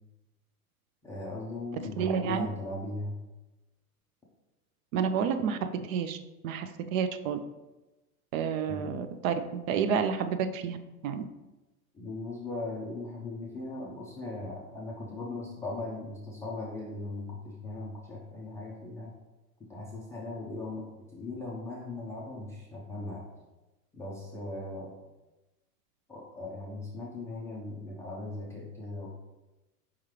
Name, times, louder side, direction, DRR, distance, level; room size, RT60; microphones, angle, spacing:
voice 1, 1.0-3.2 8.7-8.9 11.9-19.1 19.6-23.2 23.9-24.9 26.1-29.1, left 2 dB, 5° left, -5 dB, 0.3 m, -38 dB
voice 2, 2.0-2.5 4.9-6.2 6.4-7.4 8.3-10.8 11.0-11.2, right 7 dB, 60° right, 10 dB, 0.5 m, -30 dB
4.7 x 3.6 x 3.1 m, 1.1 s
hypercardioid pair, 110°, 46 cm